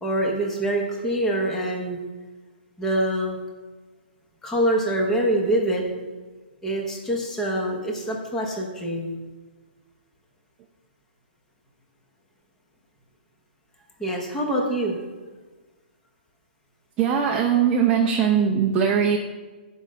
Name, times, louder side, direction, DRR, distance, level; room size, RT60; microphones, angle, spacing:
voice 1, 0.0-2.0 2.8-3.4 4.4-5.9 6.6-9.2 14.0-15.0, right 1 dB, 5° left, 0 dB, 0.9 m, -25 dB
voice 2, 17.0-19.2, right 7 dB, 15° right, 0 dB, 0.5 m, -20 dB
11.0 x 5.4 x 6.3 m, 1.3 s
hypercardioid pair, 175°, 6 cm